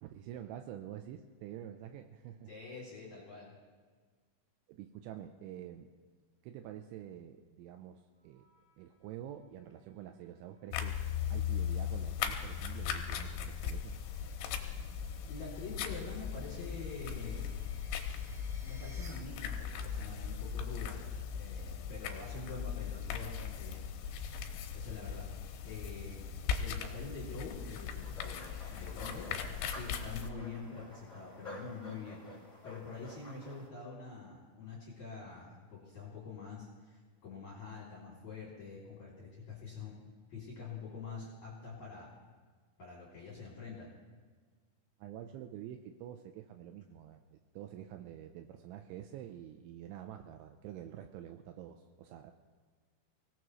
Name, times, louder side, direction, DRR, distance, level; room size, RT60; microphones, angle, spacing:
voice 1, 0.0-2.5 4.7-5.9 6.4-8.5 8.8-11.0 11.3-14.0 45.0-52.3, right 11 dB, 85° right, 6 dB, 2.8 m, -47 dB
voice 2, 2.5-3.6 15.2-17.5 18.6-21.0 21.3-23.9 24.7-26.3 26.6-32.2 32.6-39.9 40.3-42.1 42.8-43.9, left 4 dB, 40° left, -5 dB, 3.5 m, -46 dB
sound 1, 8.1-19.1, right 1 dB, 60° right, 6.5 m, -65 dB
sound 2, 10.7-30.3, left 8 dB, 75° left, 3.4 m, -38 dB
sound 3, 28.0-33.7, left 1 dB, 10° left, 2.1 m, -50 dB
24.5 x 17.5 x 3.1 m, 1.5 s
omnidirectional pair, 6.0 m